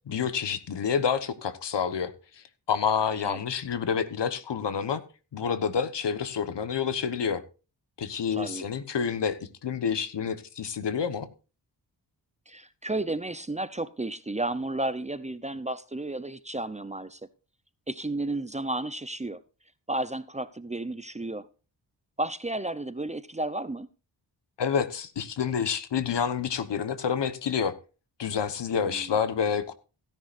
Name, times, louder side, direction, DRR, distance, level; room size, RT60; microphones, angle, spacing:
voice 1, 0.0-2.1 2.7-5.0 5.3-7.4 8.0-11.3 24.6-27.7 28.2-29.7, left 7 dB, 70° left, 1.3 m, -28 dB
voice 2, 8.3-8.7 12.5-17.2 17.9-19.4 19.9-21.5 22.2-23.9 28.7-29.1, right 2 dB, 15° right, 0.7 m, -32 dB
16.0 x 10.5 x 2.6 m
cardioid pair, 80°, 43 cm